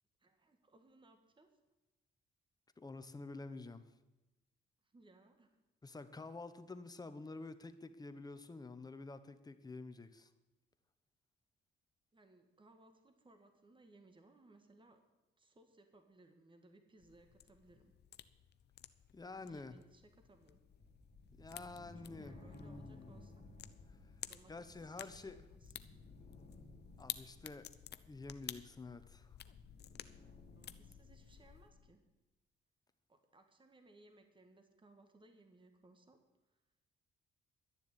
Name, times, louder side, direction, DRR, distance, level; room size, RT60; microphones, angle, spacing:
voice 1, 0.2-1.5 4.8-5.6 12.1-15.0 15.4-17.9 19.4-20.6 22.0-23.3 24.3-25.7 30.6-32.0 33.1-36.2 36.5-36.6, right 2 dB, 25° right, 6 dB, 1.8 m, -64 dB
voice 2, 2.8-3.8 5.8-10.3 19.1-19.7 21.4-23.1 24.5-25.4 27.0-27.7 28.1-29.4, left 3 dB, 20° left, 10 dB, 1.1 m, -49 dB
sound 1, 17.0-31.7, left 10 dB, 55° left, 0.7 m, -53 dB
sound 2, 20.7-32.0, left 3 dB, 35° left, 2.3 m, -58 dB
12.0 x 7.0 x 9.8 m, 1.0 s
cardioid pair, 90°, 20 cm